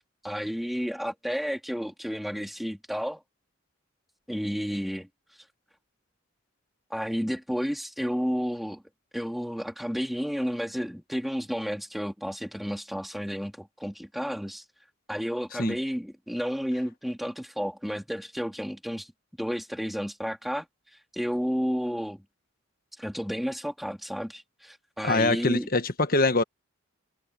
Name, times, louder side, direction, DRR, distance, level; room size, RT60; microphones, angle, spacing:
voice 1, 0.0-3.2 4.3-5.1 6.9-8.8 9.1-14.6 15.1-19.1 19.4-20.7 21.1-22.2 23.0-25.7, equal, ahead, 2.7 m, -31 dB
voice 2, 25.0-26.4, left 2 dB, 45° left, 1.5 m, -23 dB
head